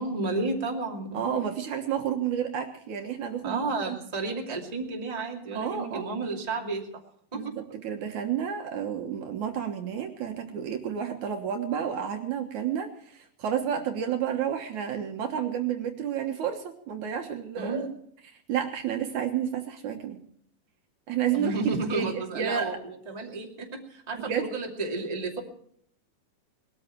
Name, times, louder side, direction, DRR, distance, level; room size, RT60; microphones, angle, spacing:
voice 1, 0.0-1.4 3.4-6.8 7.3-7.5 17.6-17.9 21.3-25.4, right 3 dB, 15° right, 0 dB, 2.1 m, -32 dB
voice 2, 1.1-3.6 3.9-4.0 5.5-6.1 7.3-17.9 18.3-20.2 21.1-22.8 24.1-24.5, right 8 dB, 65° right, 4 dB, 2.6 m, -31 dB
20.5 x 13.5 x 4.6 m, 0.64 s
omnidirectional pair, 3.9 m